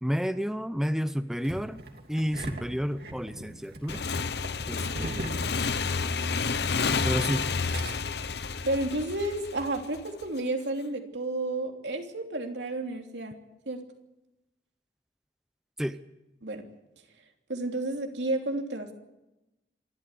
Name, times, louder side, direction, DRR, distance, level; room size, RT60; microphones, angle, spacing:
voice 1, 0.0-1.8 2.1-4.0 4.7-5.3 7.0-7.5 15.8-16.0, equal, 5° right, 11 dB, 0.7 m, -30 dB
Engine starting, 1.4-6.3 6.6-6.7 7.5-7.9, right 1 dB, 60° right, 2.8 m, -39 dB
Motorcycle / Engine, 3.9-10.2, left 4 dB, 70° left, 0.9 m, -30 dB
voice 2, 8.6-13.3 13.7-13.8 16.4-16.6 17.5-18.9, right 2 dB, 85° right, 3 dB, 3.1 m, -31 dB
27.0 x 13.0 x 8.3 m, 0.97 s
head